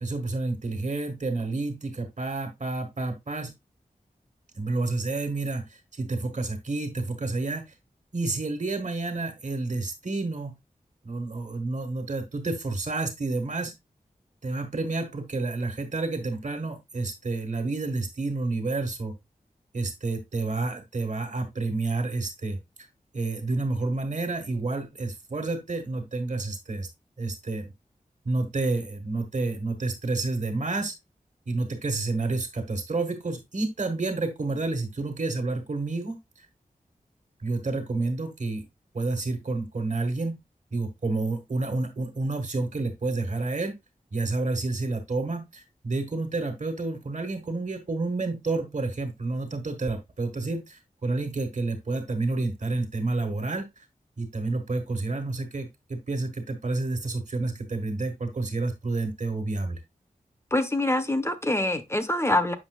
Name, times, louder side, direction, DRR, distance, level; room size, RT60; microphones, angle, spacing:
voice 1, 0.0-3.5 4.5-5.6 6.0-7.7 8.1-10.6 11.0-13.7 14.4-19.1 19.7-22.6 23.1-26.9 27.2-27.7 28.2-30.9 31.5-36.2 37.4-38.6 38.9-40.4 40.7-43.7 44.1-53.7 54.2-59.8, right 3 dB, 55° right, 1.5 m, -29 dB
voice 2, 60.5-62.5, left 1 dB, 20° left, 0.8 m, -25 dB
7.3 x 5.7 x 2.3 m
wide cardioid pair, 85°, 14 cm